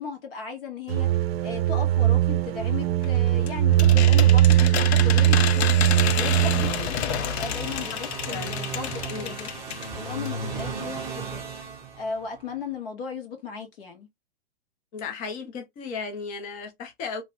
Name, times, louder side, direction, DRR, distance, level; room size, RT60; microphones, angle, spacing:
voice 1, 0.0-9.5 9.9-14.1, left 5 dB, 60° left, 1.5 m, -36 dB
sound 1, 0.9-6.9, right 13 dB, 65° right, 0.5 m, -20 dB
sound 2, 3.0-9.9 10.2-10.3 10.6-10.7, left 10 dB, 75° left, 0.5 m, -30 dB
sound 3, 5.7-12.5, right 4 dB, 10° right, 0.9 m, -36 dB
voice 2, 14.9-17.2, left 5 dB, 25° left, 0.7 m, -35 dB
3.0 x 2.2 x 3.0 m
hypercardioid pair, 130°, 33 cm